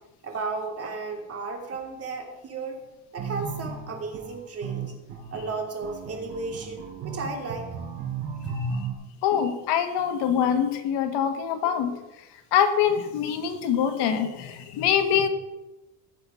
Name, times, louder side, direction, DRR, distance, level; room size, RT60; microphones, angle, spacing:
voice 1, 0.2-2.8 3.1-4.9 5.3-7.7 8.4-8.5, right 3 dB, 35° right, 1 dB, 3.0 m, -34 dB
sound 1, 3.2-8.9, right 4 dB, 60° right, 5.3 m, -34 dB
voice 2, 9.2-12.2 12.5-15.3, left 8 dB, 75° left, 7 dB, 1.7 m, -24 dB
18.0 x 7.1 x 5.8 m, 1.0 s
cardioid pair, 160°, 42 cm